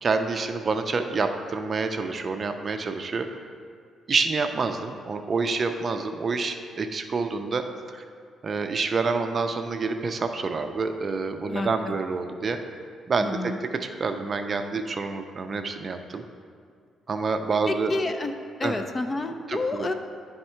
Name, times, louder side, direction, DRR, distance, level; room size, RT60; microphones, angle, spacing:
voice 1, 0.0-3.4 4.1-7.6 7.9-8.0 8.4-12.6 13.1-13.5 13.8-16.2 17.1-17.9 18.6-18.8 19.5-19.9, right 4 dB, 35° right, 6 dB, 0.4 m, -27 dB
voice 2, 11.5-12.0 13.2-13.6 17.7-18.3 18.6-19.9, left 2 dB, 25° left, 7 dB, 0.4 m, -29 dB
10.5 x 3.6 x 4.4 m, 2.1 s
cardioid pair, 125°, 0 cm